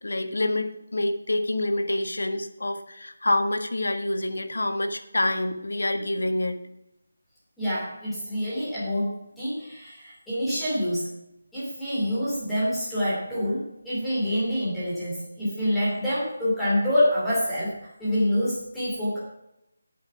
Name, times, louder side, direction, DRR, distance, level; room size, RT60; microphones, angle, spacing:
voice 1, 0.0-6.6, left 1 dB, 85° left, 7 dB, 1.7 m, -27 dB
voice 2, 7.6-11.1 11.5-19.2, equal, ahead, -11 dB, 2.8 m, -26 dB
9.6 x 8.3 x 5.9 m, 0.83 s
figure-of-eight pair, 180°, 0 cm